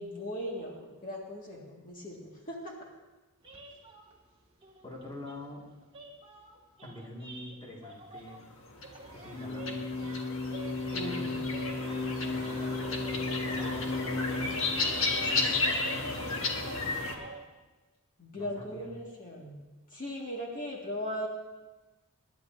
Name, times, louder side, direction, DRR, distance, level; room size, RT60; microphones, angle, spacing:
voice 1, 0.0-2.7 10.9-11.5 18.2-19.6 19.9-21.3, equal, 40° left, -3 dB, 2.0 m, -38 dB
sound 1, 3.4-8.5 8.8-13.3 13.5-17.4, right 2 dB, 25° right, 2.0 m, -49 dB
voice 2, 4.8-5.7 6.8-8.5 9.1-10.0 10.9-11.4 12.3-14.4 15.1-15.6 16.1-16.4 18.3-18.9, left 1 dB, 20° left, -3 dB, 2.1 m, -46 dB
sound 2, 8.5-17.1, left 3 dB, 65° left, 1.6 m, -32 dB
25.5 x 11.5 x 2.7 m, 1.1 s
head